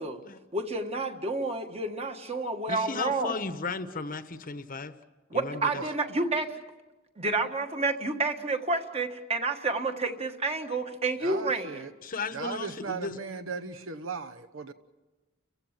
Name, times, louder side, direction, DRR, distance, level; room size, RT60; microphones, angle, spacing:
voice 1, 0.5-3.4 5.3-6.6 7.2-11.8, right 3 dB, 30° right, 5 dB, 1.6 m, -30 dB
voice 2, 2.7-4.9 5.3-5.8 12.0-13.2, left 4 dB, 40° left, 10 dB, 1.0 m, -35 dB
voice 3, 11.2-11.9 12.3-14.7, right 4 dB, 70° right, 8 dB, 1.1 m, -37 dB
30.0 x 15.5 x 7.6 m, 1.2 s
head